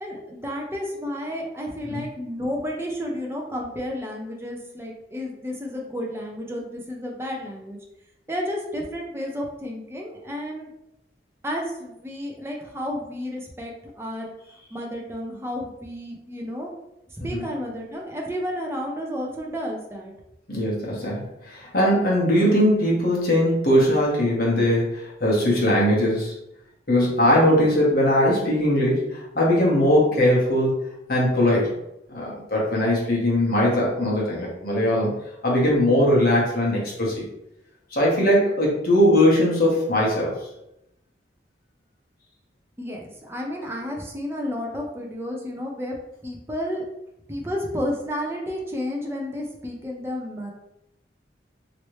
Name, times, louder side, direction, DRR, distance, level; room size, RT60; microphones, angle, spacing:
voice 1, 0.0-7.8 8.3-10.7 11.4-14.3 14.7-16.7 17.1-20.1 42.8-46.0 46.2-46.8 47.3-50.5, equal, 15° right, -1 dB, 0.5 m, -31 dB
voice 2, 20.5-26.3 26.9-30.7 31.1-31.7 32.1-35.2 35.4-37.3 37.9-40.4, left 1 dB, 50° left, -4 dB, 1.1 m, -20 dB
3.1 x 2.8 x 3.1 m, 0.84 s
head